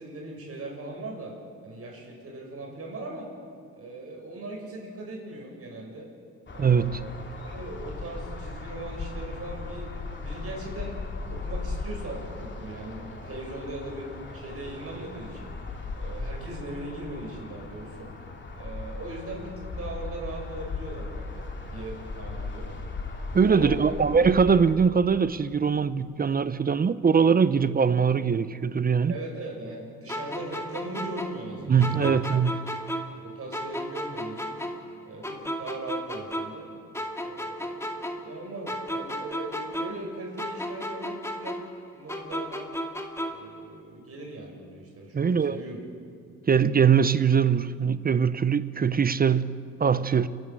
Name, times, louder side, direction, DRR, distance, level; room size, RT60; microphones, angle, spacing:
voice 1, 0.0-1.3 1.6-3.3 3.7-6.1 6.5-9.9 10.2-11.0 11.3-15.5 15.9-18.1 18.5-22.7 23.4-24.0 29.1-32.3 33.1-34.6 35.0-36.7 37.2-41.6 41.9-42.7 43.3-45.8, right 2 dB, 50° right, 7.3 m, -39 dB
sound 1, 6.5-24.8, left 3 dB, 40° left, 2.9 m, -37 dB
voice 2, 6.6-7.0 23.3-29.1 31.7-32.7 45.1-45.6 46.5-49.5 49.8-50.3, right 6 dB, 30° right, 0.7 m, -22 dB
sound 2, 30.1-33.2 33.5-36.7 36.9-40.1 40.4-43.5, equal, 10° left, 2.3 m, -34 dB
28.5 x 12.0 x 7.9 m
cardioid pair, 90°, 30 cm